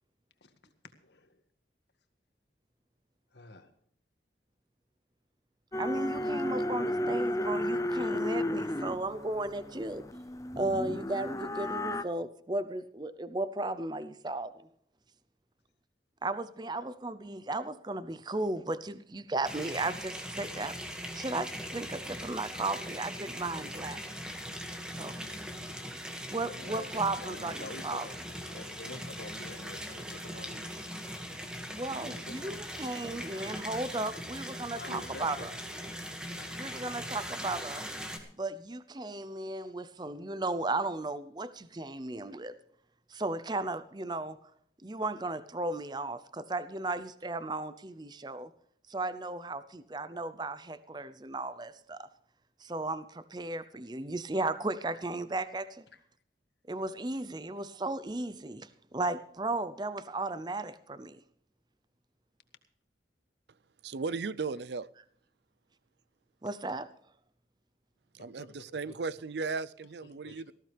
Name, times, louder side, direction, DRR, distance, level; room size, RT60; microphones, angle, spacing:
voice 1, 1.0-1.4 3.3-3.7 6.1-6.5 26.5-28.1 28.5-30.7 31.9-32.6 33.3-33.6 34.7-35.9 36.3-37.5 55.9-56.0 68.2-69.0 70.0-70.4, left 2 dB, 75° left, 7 dB, 1.9 m, -48 dB
sound 1, 5.7-12.0, left 1 dB, 20° left, 0.6 m, -33 dB
voice 2, 5.8-10.1 10.6-14.5 16.2-24.0 25.0-25.3 26.3-28.1 31.7-35.5 36.6-37.9 38.4-42.5 43.1-44.4 44.8-48.5 48.9-52.1 52.6-55.8 56.7-61.2 66.4-66.9, right 2 dB, 25° right, 14 dB, 0.6 m, -35 dB
sound 2, 19.4-38.2, equal, 5° right, 1.9 m, -40 dB
voice 3, 63.8-64.9 68.1-70.5, right 4 dB, 70° right, 19 dB, 0.5 m, -36 dB
19.0 x 15.0 x 3.4 m, 0.63 s
head